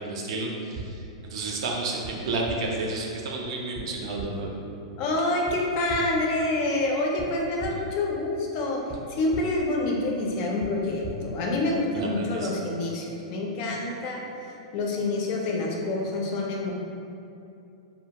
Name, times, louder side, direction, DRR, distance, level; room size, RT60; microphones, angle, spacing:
voice 1, 0.0-4.5 11.9-12.5, right 3 dB, 60° right, 0 dB, 0.4 m, -31 dB
sound 1, 0.7-0.9 2.0-2.1 2.5-2.6 3.7-3.8 4.2-4.3 5.5-5.6 5.9-6.0 7.2-7.3 7.6-7.7 8.9-9.0 9.3-9.4 10.6-10.7 11.0-11.1, right 4 dB, 15° right, 0.6 m, -37 dB
voice 2, 5.0-8.8 9.1-14.2 14.7-16.7, left 2 dB, 35° left, -1 dB, 0.4 m, -27 dB
2.4 x 2.2 x 2.8 m, 2.7 s
supercardioid pair, 150°, 3 cm